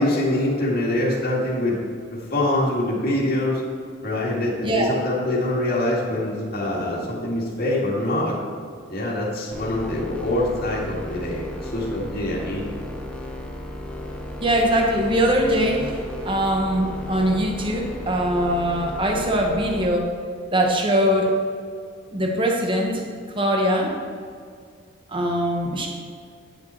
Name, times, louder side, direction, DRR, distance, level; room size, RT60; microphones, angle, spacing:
voice 1, 0.0-1.8 2.1-3.6 4.0-8.4 8.9-12.8, left 1 dB, 45° left, -6 dB, 2.1 m, -24 dB
sound 1, 9.5-19.9, left 1 dB, 5° left, 0.7 m, -35 dB
voice 2, 14.4-20.1 20.5-21.3 22.1-23.0 23.3-23.9 25.1-25.9, equal, 25° right, 1 dB, 1.0 m, -22 dB
10.0 x 6.9 x 4.4 m, 2.3 s
head